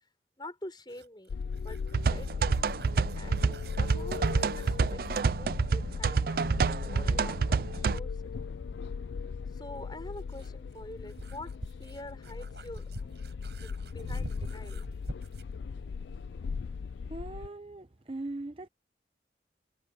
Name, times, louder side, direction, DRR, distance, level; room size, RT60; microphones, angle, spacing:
voice 1, 0.4-2.5 3.1-8.5 9.5-11.5 11.8-12.9 13.6-14.8, left 1 dB, 25° left, 6.3 m, -46 dB
sound 1, 0.8-5.3 7.7-7.8 9.8-15.6, right 1 dB, 70° right, 7.4 m, -46 dB
sound 2, 1.3-17.5, left 5 dB, 80° left, 0.4 m, -38 dB
sound 3, 1.9-8.0, right 5 dB, 55° right, 0.4 m, -28 dB
voice 2, 17.1-18.7, right 2 dB, 30° right, 0.7 m, -40 dB
head